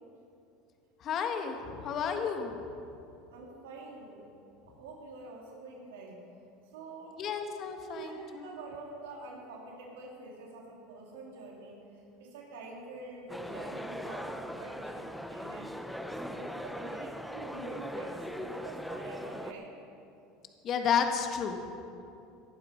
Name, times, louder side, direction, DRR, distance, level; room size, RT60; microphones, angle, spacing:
voice 1, 1.0-2.6 7.2-8.5 20.6-21.6, left 7 dB, 45° left, 5 dB, 1.5 m, -32 dB
voice 2, 3.3-4.3 4.7-6.2 6.7-7.2 7.8-19.7, right 3 dB, 90° right, -2 dB, 3.2 m, -46 dB
sound 1, 13.3-19.5, equal, ahead, 0.8 m, -40 dB
18.5 x 11.5 x 4.6 m, 2.7 s
supercardioid pair, 115°, 0 cm